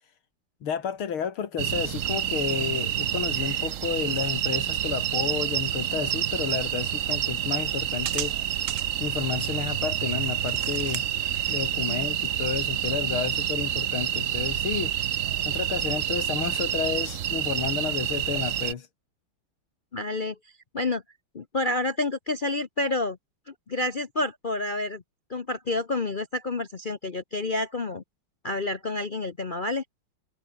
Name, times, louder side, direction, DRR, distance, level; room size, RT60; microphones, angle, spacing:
voice 1, 0.6-8.3 9.0-11.0 11.5-14.9 15.4-18.9, left 7 dB, 85° left, 2.7 m, -31 dB
sound 1, 1.6-18.7, right 11 dB, 85° right, 0.6 m, -28 dB
voice 2, 19.9-20.4 20.7-21.0 21.3-23.2 23.5-25.0 25.3-28.0 28.4-29.8, left 2 dB, 50° left, 0.6 m, -29 dB
omnidirectional pair, 2.3 m